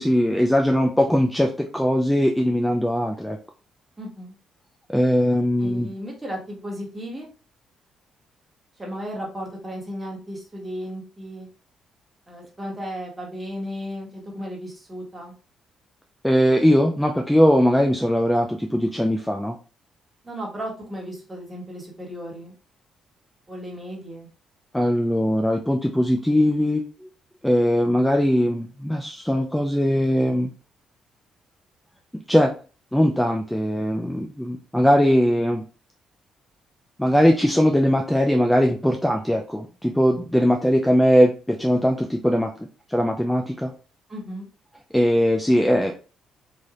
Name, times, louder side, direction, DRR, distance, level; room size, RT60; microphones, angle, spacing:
voice 1, 0.0-3.4 4.9-5.9 16.2-19.6 24.7-26.8 27.4-30.5 32.3-32.5 32.9-35.6 37.0-42.5 42.9-43.7 44.9-45.9, equal, 5° left, 2 dB, 0.4 m, -20 dB
voice 2, 4.0-4.3 5.6-7.3 8.8-11.5 12.3-15.3 20.2-22.5 23.5-24.3 44.1-44.5, equal, 20° right, -1 dB, 1.4 m, -35 dB
3.3 x 2.6 x 2.4 m, 0.35 s
cardioid pair, 90°, 0 cm